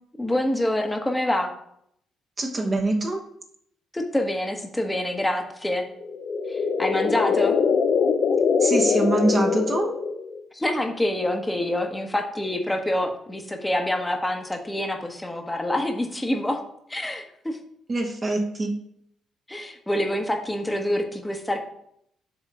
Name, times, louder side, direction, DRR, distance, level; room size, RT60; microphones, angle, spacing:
voice 1, 0.2-1.5 3.9-5.8 6.5-7.5 10.5-16.6 16.9-17.6 19.5-21.6, left 1 dB, 10° left, 4 dB, 1.1 m, -26 dB
voice 2, 2.4-3.2 8.6-9.9 17.9-18.7, right 2 dB, 30° right, 2 dB, 1.1 m, -24 dB
sound 1, 6.0-10.4, left 5 dB, 65° left, 0.6 m, -23 dB
6.9 x 3.6 x 5.5 m, 0.71 s
cardioid pair, 90°, 0 cm